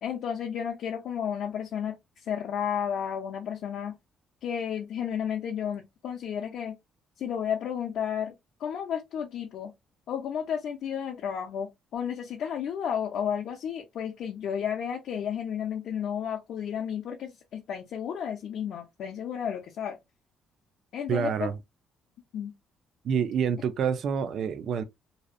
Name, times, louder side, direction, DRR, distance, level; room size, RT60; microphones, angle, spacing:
voice 1, 0.0-4.0 4.4-6.8 7.2-8.3 8.6-9.7 10.1-20.0 20.9-21.5 22.3-22.5, left 8 dB, 55° left, 0.4 m, -32 dB
voice 2, 21.1-21.6 23.0-24.8, right 7 dB, 50° right, 0.3 m, -27 dB
2.6 x 2.0 x 2.4 m
cardioid pair, 170°, 0 cm